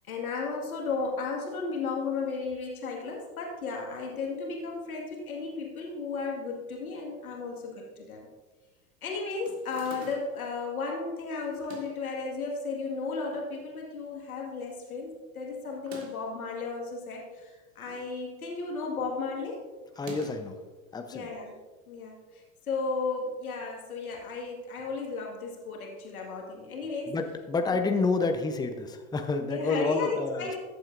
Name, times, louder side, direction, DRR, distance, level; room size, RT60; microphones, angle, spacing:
voice 1, 0.1-8.2 9.0-19.6 21.1-21.6 21.9-27.1 27.7-27.8 29.5-30.6, left 4 dB, 85° left, -1 dB, 2.1 m, -34 dB
sound 1, 9.4-10.5 11.5-12.1 12.8-13.5 13.9-14.0 14.1-14.2 15.7-16.3 17.4-18.1 18.4-18.8 19.9-20.6, right 5 dB, 45° right, 1.8 m, -48 dB
voice 2, 20.0-20.6 20.9-21.3 27.1-30.6, left 3 dB, 10° left, 6 dB, 0.8 m, -29 dB
14.5 x 7.9 x 2.6 m, 1.3 s
hypercardioid pair, 95°, 42 cm